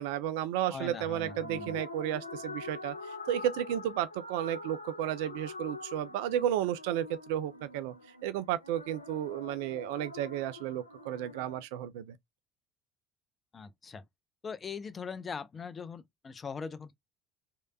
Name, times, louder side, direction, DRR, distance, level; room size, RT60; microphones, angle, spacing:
voice 1, 0.0-2.9 3.3-7.9 8.2-12.2, right 11 dB, 65° right, 0.3 m, -33 dB
sound 1, 0.7-11.6, left 2 dB, 90° left, 0.4 m, -45 dB
voice 2, 0.7-1.8 13.5-14.0 14.4-17.0, left 5 dB, 30° left, 0.5 m, -41 dB
3.2 x 2.8 x 2.2 m
figure-of-eight pair, 65°, 0 cm